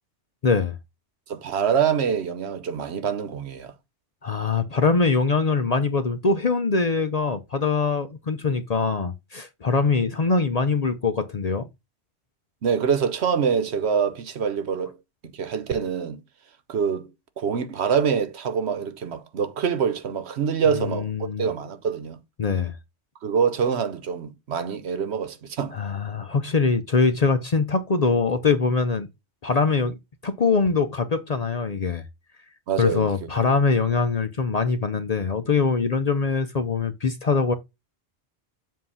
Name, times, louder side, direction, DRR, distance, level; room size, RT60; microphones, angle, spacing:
voice 1, 0.4-0.8 4.2-11.7 20.7-21.5 22.4-22.7 25.7-29.1 29.4-29.9 30.2-32.0 32.8-37.5, left 4 dB, 45° left, 0.6 m, -23 dB
voice 2, 1.3-3.7 12.6-15.0 15.3-16.2 16.7-17.1 17.4-22.2 23.2-25.8 32.7-33.3, right 7 dB, 70° right, 1.1 m, -25 dB
7.5 x 2.7 x 5.6 m
omnidirectional pair, 1.2 m